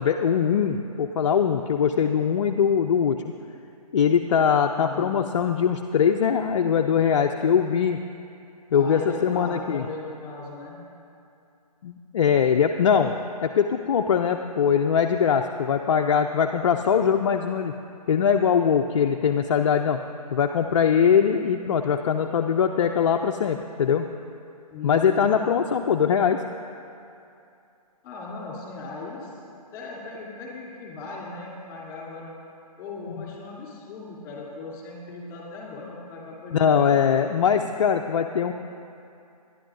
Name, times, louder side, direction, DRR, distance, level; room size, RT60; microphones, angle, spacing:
voice 1, 0.0-3.2 3.9-8.0 8.7-9.9 11.8-13.1 13.4-17.7 18.1-20.0 20.3-24.1 24.8-26.4 33.2-33.3 36.5-38.5, left 7 dB, 50° left, 4 dB, 0.5 m, -22 dB
voice 2, 4.7-5.2 8.7-10.8 24.7-25.4 28.0-29.3 29.7-32.3 32.8-37.0, left 3 dB, 20° left, -4 dB, 3.1 m, -37 dB
22.5 x 11.0 x 2.6 m, 2.6 s
figure-of-eight pair, 145°, 20 cm